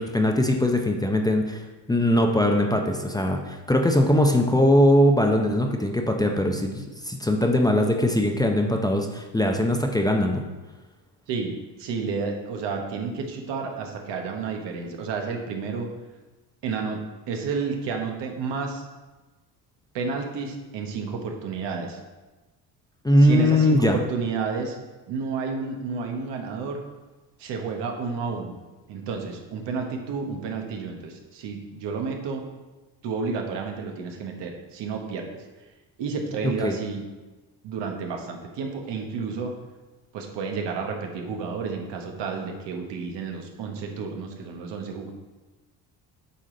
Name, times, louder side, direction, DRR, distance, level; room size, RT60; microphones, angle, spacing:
voice 1, 0.0-10.4 23.0-24.0 36.6-36.8, left 1 dB, 10° left, 2 dB, 0.6 m, -21 dB
voice 2, 11.3-15.9 16.6-18.8 19.9-22.0 23.2-24.8 25.1-26.8 27.4-28.6 28.9-32.4 33.0-35.4 36.0-37.0 37.6-39.5 40.1-45.1, right 5 dB, 75° right, 2 dB, 1.3 m, -31 dB
8.5 x 5.0 x 3.9 m, 1.2 s
cardioid pair, 100°, 43 cm